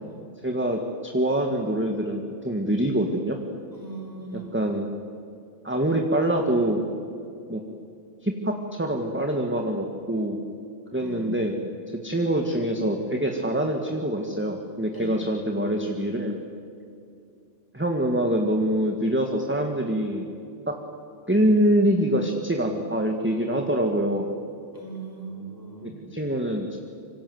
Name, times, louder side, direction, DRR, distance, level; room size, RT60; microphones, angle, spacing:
voice 1, 0.4-3.4 4.3-4.9 5.6-6.8 7.5-7.6 8.2-10.4 10.9-11.6 12.0-16.4 17.7-20.2 20.7-20.8 21.3-24.3 25.8-26.8, right 1 dB, 10° right, 2 dB, 1.8 m, -25 dB
voice 2, 3.7-4.6 11.0-11.5 14.9-15.2 24.7-26.0, right 3 dB, 15° left, 0 dB, 5.6 m, -39 dB
26.5 x 25.5 x 8.0 m, 2.5 s
omnidirectional pair, 1.2 m